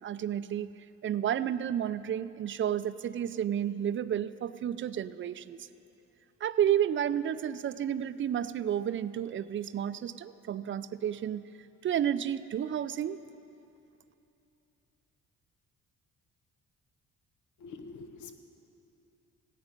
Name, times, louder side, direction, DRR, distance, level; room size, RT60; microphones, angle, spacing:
voice 1, 0.0-0.7 1.0-5.6 6.4-11.4 11.8-13.2, right 10 dB, 40° right, 14 dB, 0.4 m, -31 dB
voice 2, 17.6-18.4, left 4 dB, 80° left, 7 dB, 1.0 m, -45 dB
16.5 x 9.0 x 5.3 m, 2.9 s
cardioid pair, 90°, 30 cm